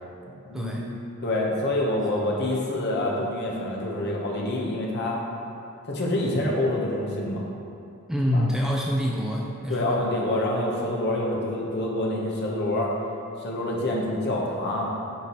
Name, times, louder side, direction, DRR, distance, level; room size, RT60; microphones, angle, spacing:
voice 1, 1.2-5.2 5.9-7.5 8.3-8.4 9.7-12.9 13.4-14.9, left 1 dB, 55° left, -2 dB, 1.0 m, -26 dB
voice 2, 8.1-10.0, equal, 5° right, -3 dB, 0.4 m, -26 dB
8.6 x 4.4 x 3.0 m, 2.6 s
head